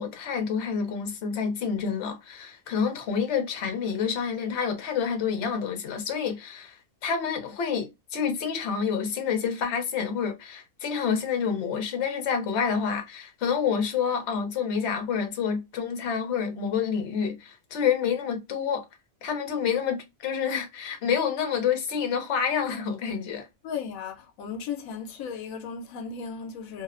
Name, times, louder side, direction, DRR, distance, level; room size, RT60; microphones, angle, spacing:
voice 1, 0.0-6.8 7.0-18.8 19.2-23.5, left 7 dB, 60° left, 1.0 m, -28 dB
voice 2, 23.6-26.8, left 6 dB, 90° left, 1.0 m, -35 dB
2.8 x 2.0 x 2.4 m
omnidirectional pair, 1.4 m